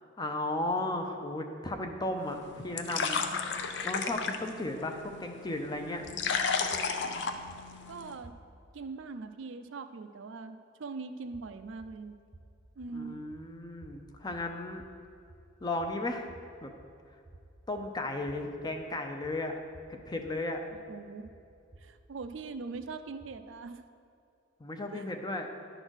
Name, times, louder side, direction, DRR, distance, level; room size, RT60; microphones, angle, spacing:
voice 1, 0.2-3.2 3.8-6.0 12.9-14.8 15.6-16.3 16.6-16.7 17.7-19.6 19.9-20.6 24.6-25.5, left 2 dB, 20° left, 4 dB, 0.6 m, -35 dB
sound 1, 2.2-8.2, left 5 dB, 60° left, 0.5 m, -34 dB
sound 2, 6.0-8.8 11.2-23.6, right 2 dB, 25° right, 0.6 m, -57 dB
voice 2, 7.9-8.3 8.7-12.1 12.8-13.2 20.9-21.3 21.8-23.8 24.9-25.1, right 4 dB, 70° right, 9 dB, 0.5 m, -41 dB
11.0 x 3.9 x 6.3 m, 2.6 s
head